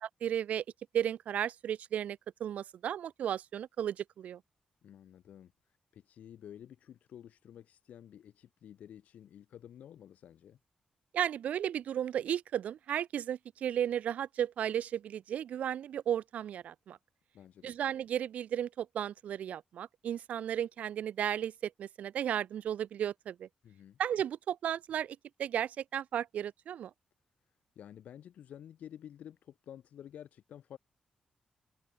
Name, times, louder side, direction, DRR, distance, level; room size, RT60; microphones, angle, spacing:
voice 1, 0.0-0.6 0.9-4.4 11.1-17.0 17.6-23.5 24.0-26.9, right 10 dB, 75° right, 0.5 m, -34 dB
voice 2, 4.8-5.5 5.9-10.6 17.3-17.8 23.6-24.0 27.7-30.8, left 10 dB, 80° left, 4.9 m, -51 dB
wide cardioid pair, 140°, 2 cm